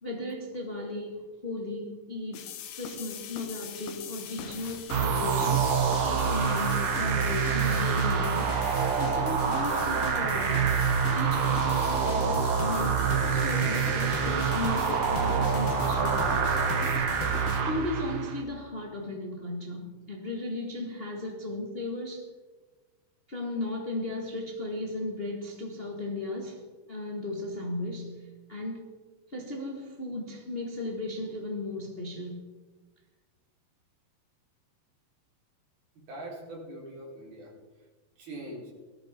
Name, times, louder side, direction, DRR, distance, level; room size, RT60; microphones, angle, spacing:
voice 1, 0.0-2.5 2.8-8.6 9.0-10.8 11.1-16.4 17.6-22.3 23.3-26.6 26.9-28.9 29.3-32.4, left 1 dB, 90° left, 0 dB, 0.5 m, -36 dB
sound 1, 2.3-17.6, left 7 dB, 70° left, 2.7 m, -40 dB
sound 2, 4.9-18.4, right 6 dB, 60° right, 2.5 m, -26 dB
voice 2, 36.0-37.5 38.2-38.7, right 1 dB, 80° right, -3 dB, 5.8 m, -42 dB
18.0 x 13.0 x 4.4 m, 1.3 s
omnidirectional pair, 4.3 m